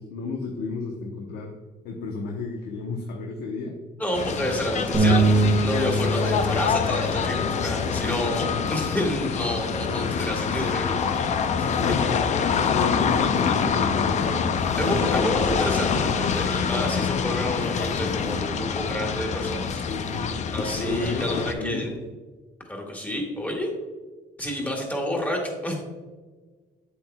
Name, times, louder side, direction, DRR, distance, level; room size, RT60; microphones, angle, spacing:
voice 1, 0.0-1.5 1.8-3.8 4.3-4.5 11.6-12.3 12.7-15.4 19.9-20.3 20.7-22.0 24.6-24.7, left 3 dB, 75° left, 1 dB, 1.0 m, -32 dB
voice 2, 4.0-11.0 11.6-11.7 14.8-19.8 20.5-21.9 22.7-23.7 24.4-25.8, equal, 10° left, 0 dB, 1.9 m, -29 dB
sound 1, 4.1-21.5, left 6 dB, 45° left, 0.5 m, -26 dB
sound 2, 4.9-11.2, right 2 dB, 20° right, 1.0 m, -26 dB
8.3 x 7.9 x 2.3 m, 1.4 s
cardioid pair, 110°, 17 cm